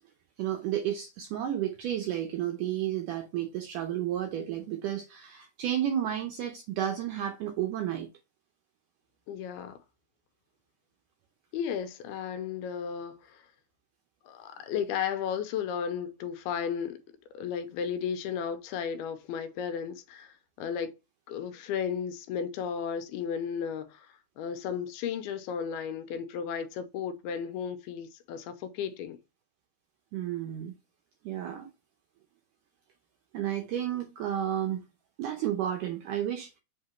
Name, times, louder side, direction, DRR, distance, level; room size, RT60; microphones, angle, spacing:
voice 1, 0.4-8.1 30.1-30.8 31.2-31.7 33.3-34.8 35.2-36.6, right 11 dB, 80° right, 1.9 m, -32 dB
voice 2, 9.3-9.8 11.5-13.4 14.3-17.0 17.3-20.9 21.3-29.2, left 7 dB, 85° left, 2.7 m, -34 dB
7.7 x 3.7 x 4.3 m
omnidirectional pair, 4.5 m